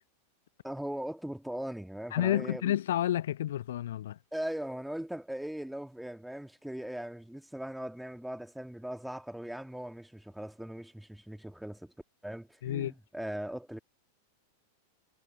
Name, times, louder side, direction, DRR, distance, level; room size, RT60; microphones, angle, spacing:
voice 1, 0.6-2.7 4.3-11.9 12.2-13.8, right 1 dB, ahead, 2.3 m, -39 dB
voice 2, 2.1-4.2 12.6-12.9, left 12 dB, 60° left, 0.7 m, -30 dB
figure-of-eight pair, 90°, 0 cm